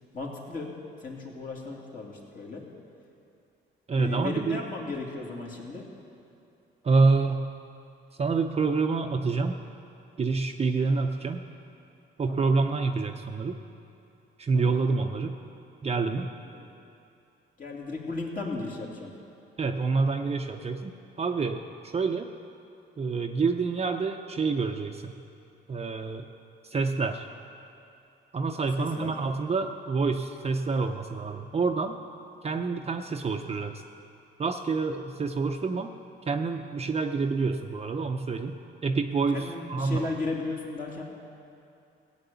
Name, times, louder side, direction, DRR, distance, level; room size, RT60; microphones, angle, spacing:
voice 1, 0.1-0.7 1.0-2.6 4.0-5.8 12.3-12.5 14.5-14.8 16.5-16.8 17.6-19.1 28.8-29.1 39.3-41.0, left 3 dB, 45° left, -2 dB, 2.8 m, -35 dB
voice 2, 3.9-4.6 6.8-7.5 8.2-9.6 10.2-11.4 12.2-13.6 14.4-15.3 15.8-16.3 19.6-22.3 23.0-25.1 25.7-26.2 26.6-27.3 28.3-32.0 32.4-33.7 34.4-35.9 36.3-38.5 38.8-40.1, right 4 dB, 30° right, 4 dB, 0.7 m, -27 dB
15.5 x 9.0 x 7.0 m, 2.7 s
cardioid pair, 90°, 20 cm